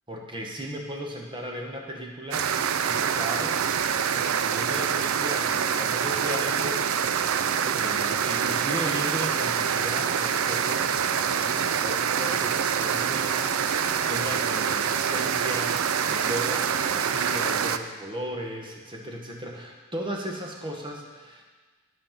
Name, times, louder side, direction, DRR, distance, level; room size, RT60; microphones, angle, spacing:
voice 1, 0.1-3.6 4.1-10.9 11.2-21.4, equal, 25° right, 0 dB, 1.3 m, -36 dB
sound 1, 2.3-17.8, right 7 dB, 85° right, 0.5 m, -26 dB
12.0 x 5.5 x 5.8 m, 1.4 s
head